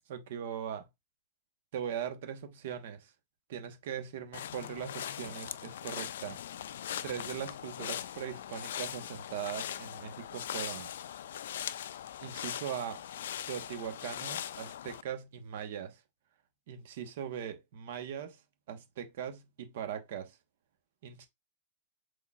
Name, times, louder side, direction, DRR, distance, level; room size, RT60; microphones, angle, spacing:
voice 1, 0.1-0.8 1.7-3.1 3.5-6.4 7.0-10.9 12.2-13.0 13.5-16.0 16.7-18.4 18.7-20.4 21.0-21.3, right 8 dB, 70° right, 1.1 m, -40 dB
sound 1, 4.3-15.0, left 10 dB, 80° left, 0.3 m, -40 dB
4.8 x 3.8 x 2.4 m
supercardioid pair, 140°, 0 cm